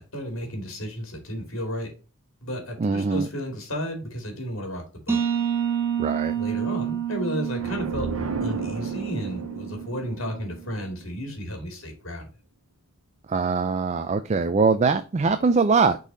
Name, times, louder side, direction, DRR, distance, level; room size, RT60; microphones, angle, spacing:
voice 1, 0.1-1.9 2.4-5.2 6.3-8.1 8.4-12.3, equal, 70° left, 3 dB, 2.4 m, -33 dB
voice 2, 2.8-3.3 6.0-6.3 13.3-16.0, right 4 dB, 35° right, 10 dB, 0.4 m, -22 dB
sound 1, 5.1-10.6, right 8 dB, 10° right, 1.1 m, -29 dB
sound 2, 7.6-11.3, right 3 dB, 90° right, 0.8 m, -34 dB
6.3 x 4.1 x 3.9 m, 0.34 s
head